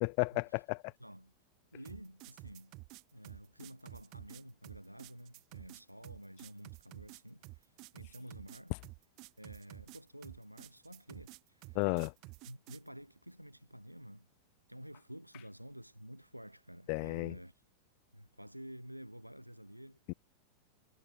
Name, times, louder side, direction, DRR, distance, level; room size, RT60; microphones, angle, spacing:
voice 1, 0.0-0.9 11.7-12.1 16.9-17.3 20.1-20.2, left 40 dB or more, 45° left, 0.4 m, -33 dB
voice 2, 1.0-1.3 1.7-2.8 3.1-8.8 9.4-11.8 12.5-14.3 14.7-17.5 18.1-20.1, equal, 90° right, 1.3 m, -51 dB
sound 1, 1.9-12.9, right 26 dB, 40° right, 0.4 m, -52 dB
figure-of-eight pair, 90°, 0 cm